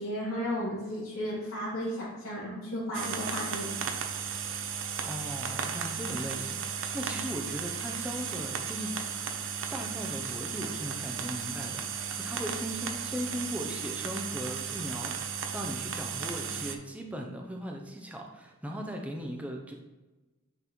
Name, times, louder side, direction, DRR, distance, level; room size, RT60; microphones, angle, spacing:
voice 1, 0.0-3.8, equal, 85° left, -8 dB, 1.8 m, -34 dB
sound 1, 2.9-16.7, right 7 dB, 60° right, 0.5 m, -35 dB
voice 2, 5.0-8.9 9.7-19.7, equal, 5° right, 1 dB, 0.5 m, -38 dB
8.9 x 3.9 x 3.0 m, 1.1 s
head